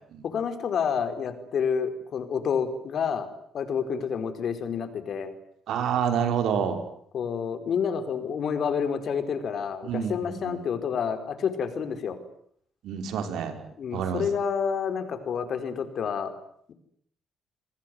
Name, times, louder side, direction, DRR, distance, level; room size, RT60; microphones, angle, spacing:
voice 1, 0.2-3.3 3.5-5.3 7.1-12.2 13.8-16.3, left 7 dB, 60° left, 9 dB, 4.8 m, -29 dB
voice 2, 5.7-6.8 9.8-10.6 12.8-13.6 13.9-14.2, right 8 dB, 80° right, 7 dB, 5.6 m, -28 dB
29.5 x 20.5 x 9.6 m, 0.67 s
cardioid pair, 90°, 0 cm